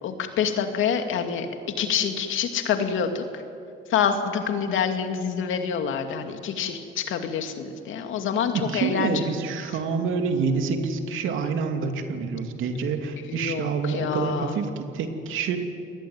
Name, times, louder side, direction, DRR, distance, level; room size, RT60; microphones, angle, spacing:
voice 1, 0.0-1.5 1.8-3.2 3.9-9.3 13.3-14.6, left 7 dB, 80° left, 6 dB, 2.5 m, -26 dB
voice 2, 8.5-15.6, right 5 dB, 85° right, 5 dB, 2.8 m, -27 dB
27.0 x 20.0 x 9.5 m, 2.6 s
cardioid pair, 90°, 20 cm